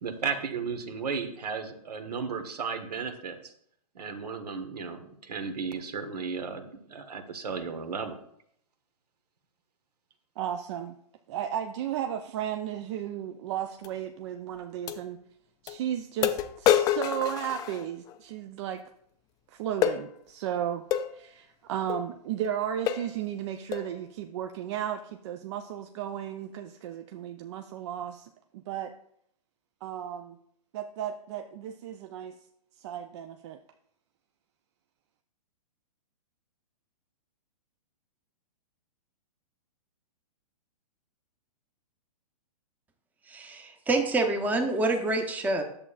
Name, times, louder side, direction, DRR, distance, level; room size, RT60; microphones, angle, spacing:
voice 1, 0.0-3.5 3.9-6.6 6.9-8.2, right 5 dB, 80° right, 7 dB, 1.3 m, -34 dB
voice 2, 10.4-11.0 11.3-15.2 15.6-18.8 19.5-20.8 21.1-28.9 29.8-30.4 30.7-32.4 32.8-33.6, right 10 dB, 45° right, 7 dB, 0.5 m, -34 dB
sound 1, 13.8-13.9 14.9-15.0 15.7-15.8 16.2-18.2 19.8-20.0 20.9-21.1 21.9-22.0 22.4-22.6 22.9-23.2 23.7-23.9, left 11 dB, 20° left, 0.4 m, -27 dB
voice 3, 43.3-45.6, right 2 dB, 10° right, 4 dB, 0.7 m, -27 dB
10.5 x 7.0 x 2.4 m, 0.70 s
hypercardioid pair, 135°, 20 cm